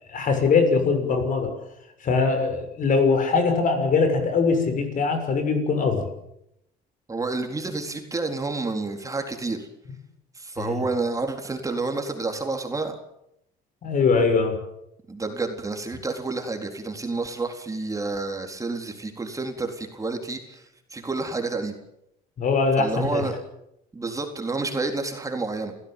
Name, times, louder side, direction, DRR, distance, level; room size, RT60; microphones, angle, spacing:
voice 1, 0.1-1.5 2.0-6.0 10.6-10.8 13.8-14.6 22.4-23.2, left 4 dB, 50° left, 7 dB, 6.6 m, -22 dB
voice 2, 7.1-9.7 10.3-12.9 15.1-21.7 22.8-23.3 23.9-25.7, right 3 dB, 20° right, 4 dB, 4.0 m, -29 dB
29.5 x 16.0 x 9.2 m, 0.80 s
cardioid pair, 110°, 17 cm